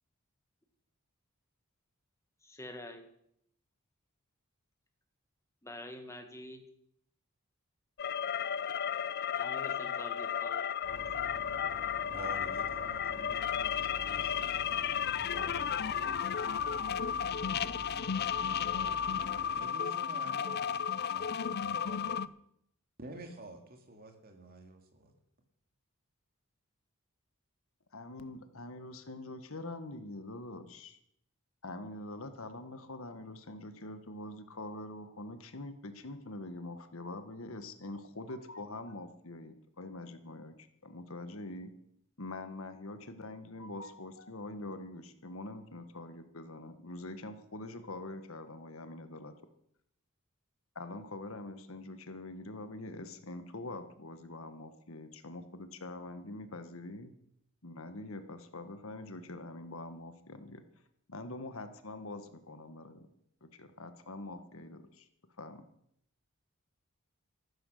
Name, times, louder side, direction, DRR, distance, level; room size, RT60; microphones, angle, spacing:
voice 1, 2.4-3.1 5.6-6.6 9.4-10.7, left 1 dB, 15° left, 5 dB, 1.9 m, -46 dB
sound 1, 8.0-22.3, left 8 dB, 50° left, 0.5 m, -33 dB
sound 2, 10.8-19.6, right 1 dB, 85° right, 4.9 m, -48 dB
voice 2, 12.1-15.8 18.7-22.3 23.0-25.1, right 2 dB, 45° right, 4 dB, 2.5 m, -50 dB
voice 3, 27.9-31.0 31.6-41.7 42.2-49.3 50.7-57.1 57.6-60.6 61.1-63.1 63.4-65.1 65.4-65.6, left 2 dB, 70° left, 9 dB, 1.4 m, -44 dB
14.5 x 12.0 x 6.6 m, 0.72 s
head